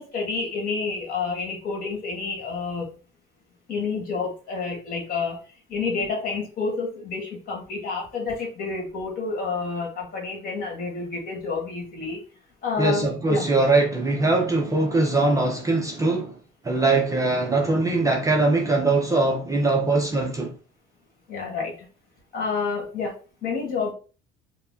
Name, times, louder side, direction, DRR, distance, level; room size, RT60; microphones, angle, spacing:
voice 1, 0.0-2.9 3.7-5.4 5.7-12.2 12.6-13.5 21.3-21.9 22.3-23.9, left 4 dB, 45° left, 1.9 m, -29 dB
voice 2, 12.8-16.4 16.6-20.6, right 2 dB, 15° right, 0.6 m, -22 dB
4.6 x 2.2 x 3.8 m
cardioid pair, 140°, 21 cm